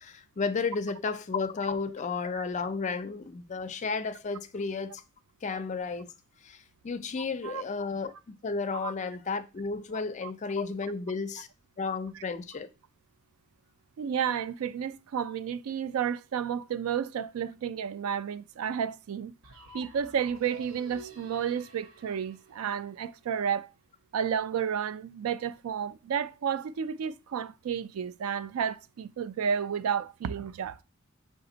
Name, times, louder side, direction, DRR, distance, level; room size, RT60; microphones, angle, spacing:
voice 1, 0.0-5.0 5.4-6.1 6.4-6.6 6.8-8.1 8.4-11.5 11.8-12.7, left 4 dB, 35° left, 0.4 m, -32 dB
voice 2, 9.9-10.3 14.0-19.3 19.7-23.7 24.1-30.8, right 7 dB, 90° right, 0.3 m, -31 dB
sound 1, 19.4-23.4, right 1 dB, 75° right, 0.8 m, -50 dB
5.0 x 2.5 x 3.8 m
head